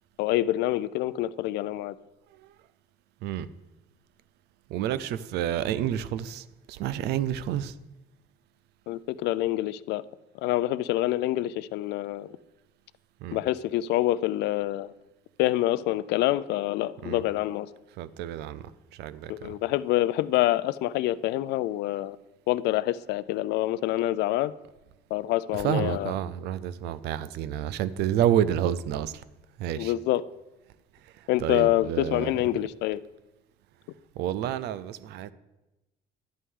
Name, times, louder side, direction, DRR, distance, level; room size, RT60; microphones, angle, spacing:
voice 1, 0.2-1.9 8.9-10.0 10.4-12.3 13.3-14.9 15.4-17.7 19.3-22.2 22.5-24.5 25.1-26.1 29.8-30.2 31.3-33.0, left 15 dB, 85° left, 17 dB, 0.4 m, -26 dB
voice 2, 4.7-7.7 13.2-13.4 17.0-17.2 18.0-19.5 25.5-29.2 29.6-29.9 31.2-32.3 34.2-35.3, right 10 dB, 80° right, 16 dB, 0.5 m, -29 dB
11.5 x 8.4 x 3.7 m, 1.0 s
cardioid pair, 110°, 17 cm